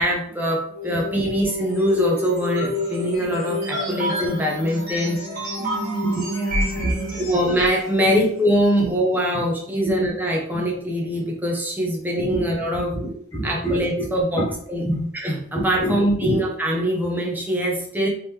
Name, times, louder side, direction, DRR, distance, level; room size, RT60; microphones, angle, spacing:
voice 1, 0.0-5.2 7.2-12.9 13.4-14.8 15.2-18.1, equal, 10° right, -1 dB, 0.7 m, -23 dB
sound 1, 0.7-7.9, left 1 dB, 45° right, 1.7 m, -28 dB
voice 2, 5.6-7.3 8.8-8.9 9.3-9.4 9.8-10.1 12.3-12.4 12.9-14.1 14.3-14.5 14.8-15.0 15.8-16.4, right 1 dB, 15° left, -5 dB, 0.9 m, -27 dB
3.7 x 2.9 x 3.2 m, 0.63 s
head